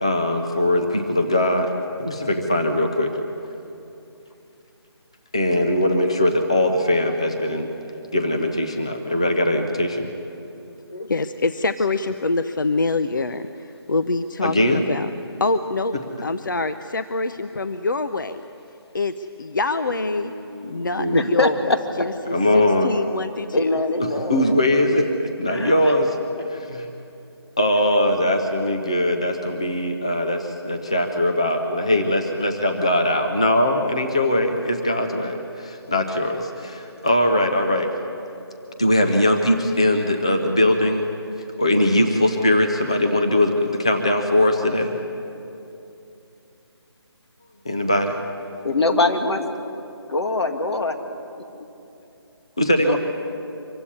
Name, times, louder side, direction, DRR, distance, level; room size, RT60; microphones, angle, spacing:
voice 1, 0.0-1.7 2.0-3.1 5.3-7.7 8.1-10.1 14.4-14.8 20.2-21.2 22.3-22.9 24.0-25.1 25.4-26.9 27.6-37.9 38.8-41.1 41.6-45.0 47.6-48.2 52.6-53.0, left 1 dB, 15° left, 4 dB, 0.5 m, -21 dB
voice 2, 10.9-15.1 15.4-15.9 16.2-18.4 18.9-20.3 20.6-23.8, left 3 dB, 50° left, 10 dB, 0.7 m, -25 dB
voice 3, 21.1-21.8 23.5-24.6 25.5-25.7 48.6-49.4 50.1-51.0 51.4-51.5 52.9-53.0, left 2 dB, 80° left, 5 dB, 2.5 m, -22 dB
24.5 x 16.0 x 9.7 m, 2.8 s
hypercardioid pair, 180°, 14 cm